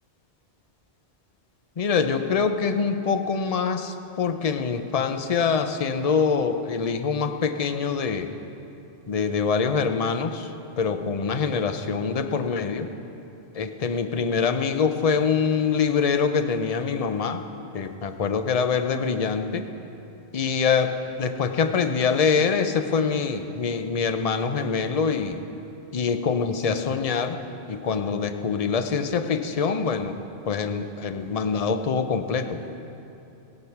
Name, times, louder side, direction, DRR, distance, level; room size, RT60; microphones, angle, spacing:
voice 1, 1.8-8.3 9.1-10.5 10.8-12.9 13.5-17.4 17.7-19.7 20.3-25.4 25.9-27.4 27.7-30.2 30.5-32.6, left 5 dB, 40° left, 8 dB, 0.6 m, -24 dB
20.5 x 8.0 x 5.9 m, 2.9 s
omnidirectional pair, 1.2 m